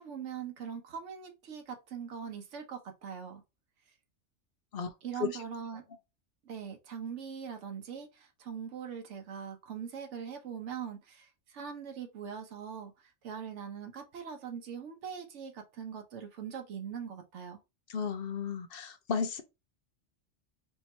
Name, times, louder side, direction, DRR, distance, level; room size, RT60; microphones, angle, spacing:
voice 1, 0.0-3.4 5.0-5.8 6.4-17.6, right 7 dB, 80° right, 1.1 m, -42 dB
voice 2, 17.9-19.4, left 6 dB, 55° left, 0.8 m, -33 dB
3.4 x 2.8 x 4.2 m
omnidirectional pair, 1.2 m